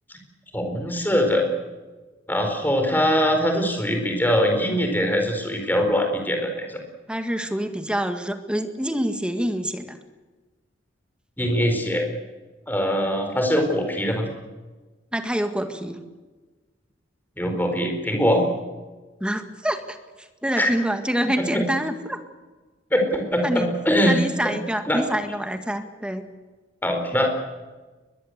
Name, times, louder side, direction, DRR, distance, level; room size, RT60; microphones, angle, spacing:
voice 1, 0.5-1.4 2.3-6.8 11.4-12.0 12.7-14.3 17.4-18.4 20.6-20.7 21.4-21.6 22.9-24.5 24.9-25.0 26.8-27.3, equal, 10° left, 4 dB, 4.5 m, -22 dB
voice 2, 7.1-10.0 15.1-16.0 19.2-22.2 23.4-23.7 24.1-26.3, equal, 5° right, 7 dB, 1.8 m, -26 dB
22.0 x 22.0 x 8.1 m, 1.3 s
head